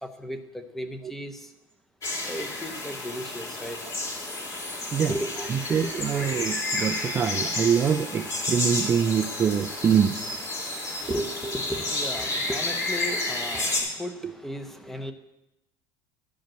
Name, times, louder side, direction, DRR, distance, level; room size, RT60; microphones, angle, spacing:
voice 1, 0.0-1.5 2.3-3.8 5.1-5.9 11.0-15.1, equal, 5° left, 7 dB, 0.7 m, -35 dB
sound 1, 2.0-13.8, left 2 dB, 30° left, 2.6 m, -31 dB
voice 2, 5.5-10.3, right 7 dB, 20° right, 7 dB, 0.4 m, -24 dB
Wind instrument woodwind instrument, 6.1-9.9, left 3 dB, 50° left, 2.9 m, -50 dB
11.5 x 5.2 x 7.5 m, 0.92 s
cardioid pair, 155°, 11 cm